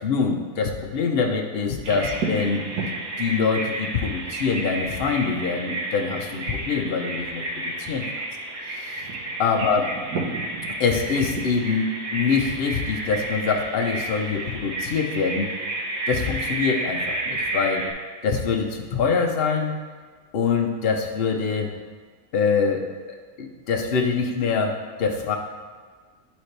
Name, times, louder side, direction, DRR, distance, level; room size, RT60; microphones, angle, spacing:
voice 1, 0.0-2.6 3.2-8.0 8.8-9.0 9.4-9.8 10.8-15.5 16.1-17.9 18.2-19.8 20.3-21.7 22.3-22.9 23.4-25.3, left 5 dB, 50° left, 2 dB, 0.7 m, -24 dB
Bird vocalization bird call bird song, 1.8-17.9, right 2 dB, 75° right, 1.7 m, -31 dB
11.0 x 4.1 x 3.3 m, 1.5 s
omnidirectional pair, 1.7 m